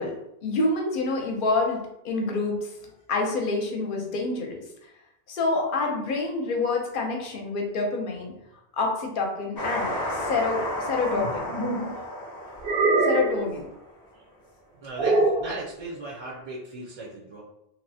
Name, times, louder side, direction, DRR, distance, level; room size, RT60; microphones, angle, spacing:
voice 1, 0.0-4.6 5.3-8.3 8.7-11.5 13.0-13.7, left 3 dB, 60° left, 1 dB, 0.7 m, -27 dB
sound 1, 9.6-13.8, left 1 dB, 25° left, 0.6 m, -32 dB
sound 2, 11.1-11.9 12.6-13.5 15.0-15.5, right 2 dB, 75° right, 0.8 m, -23 dB
voice 2, 14.8-17.4, right 2 dB, 45° right, -4 dB, 0.5 m, -37 dB
2.8 x 2.0 x 2.6 m, 0.83 s
omnidirectional pair, 1.0 m